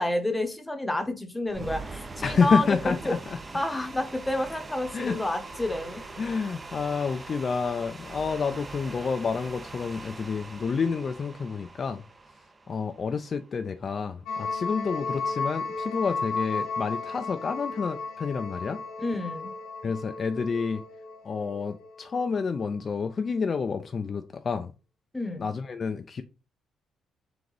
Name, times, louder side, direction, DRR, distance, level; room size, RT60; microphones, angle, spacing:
voice 1, 0.0-3.1 3.5-6.0 19.0-19.5 25.1-25.5, left 2 dB, 10° left, 0.8 m, -29 dB
sound 1, 1.5-13.6, right 3 dB, 25° right, 0.5 m, -42 dB
voice 2, 2.2-3.2 4.9-5.2 6.2-12.0 12.7-18.8 19.8-20.8 21.2-24.7 25.4-26.2, left 5 dB, 45° left, 0.4 m, -29 dB
sound 2, 14.3-22.4, left 4 dB, 80° left, 1.2 m, -34 dB
3.9 x 3.4 x 3.2 m
cardioid pair, 90°, 0 cm